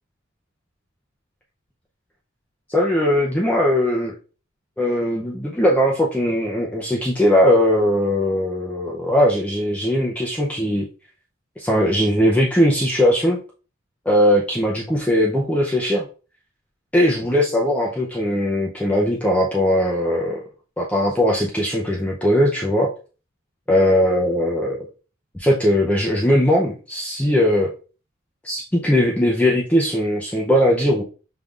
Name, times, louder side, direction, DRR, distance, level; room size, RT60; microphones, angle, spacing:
voice 1, 2.7-4.1 4.8-10.9 11.6-13.4 14.1-16.1 16.9-20.4 20.8-22.9 23.7-24.9 25.3-27.7 28.4-31.0, equal, 5° left, -3 dB, 0.5 m, -19 dB
5.2 x 3.4 x 2.4 m, 0.36 s
head